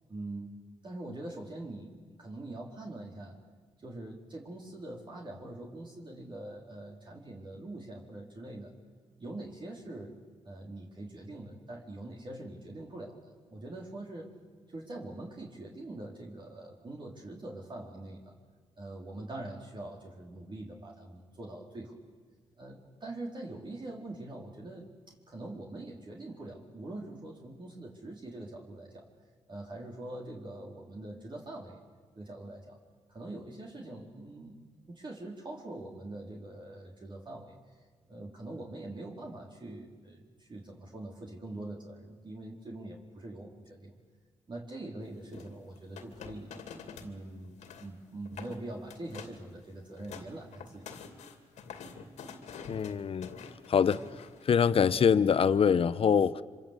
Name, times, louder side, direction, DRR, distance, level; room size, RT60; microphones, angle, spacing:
voice 1, 0.1-0.6 0.8-3.4 3.8-8.7 9.2-10.1 10.4-14.3 14.7-18.4 18.8-22.0 22.6-24.9 25.3-29.1 29.5-31.8 32.1-32.8 33.1-34.6 34.9-37.6 38.1-44.0 44.5-46.5 47.0-47.5 47.8-50.9, right 2 dB, 40° right, -1 dB, 4.2 m, -43 dB
sound 1, 45.3-47.2 47.4-47.9 48.3-48.6 48.9-49.4 49.8-54.5, left 6 dB, 85° left, 2.6 m, -46 dB
voice 2, 52.7-53.3 53.7-54.0 54.5-56.4, left 7 dB, 55° left, 15 dB, 0.9 m, -24 dB
27.0 x 25.0 x 8.4 m, 1.5 s
cardioid pair, 65°, 12 cm